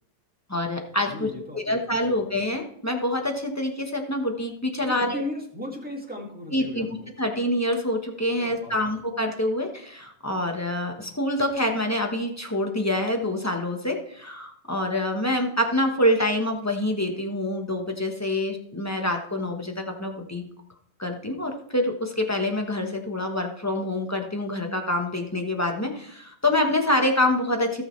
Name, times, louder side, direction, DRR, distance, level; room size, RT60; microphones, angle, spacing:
voice 1, 0.5-5.2 6.5-6.9 7.2-20.4 21.0-27.8, left 1 dB, 10° left, 3 dB, 0.8 m, -26 dB
voice 2, 1.1-1.8 2.0-2.2 4.8-7.1 8.4-8.7, left 2 dB, 5° right, -1 dB, 2.0 m, -36 dB
17.5 x 6.3 x 3.3 m, 0.66 s
omnidirectional pair, 2.1 m